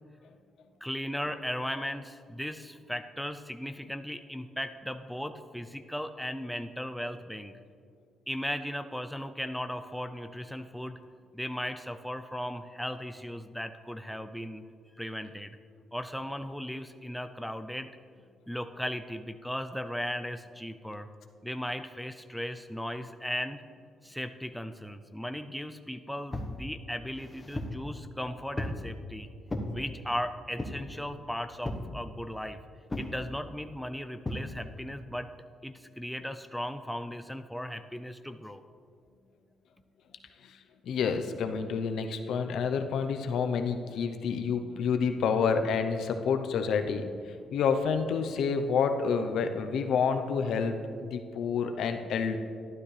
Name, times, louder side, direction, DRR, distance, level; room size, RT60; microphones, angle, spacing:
voice 1, 0.8-7.5 8.3-11.0 11.3-14.6 15.0-15.6 15.9-17.9 18.5-21.1 21.4-23.6 24.0-29.3 29.7-32.6 33.0-35.3 35.6-38.6, equal, ahead, 8 dB, 0.5 m, -37 dB
sound 1, 26.3-26.6 27.1-27.8 28.6-28.9 29.5-29.7 30.6-30.9 31.6-31.9 32.9-33.2 34.2-34.5, left 1 dB, 20° left, 1.2 m, -35 dB
voice 2, 40.9-47.1 47.5-52.4, left 6 dB, 75° left, 7 dB, 0.7 m, -28 dB
12.0 x 12.0 x 3.3 m, 2.2 s
cardioid pair, 90°, 0 cm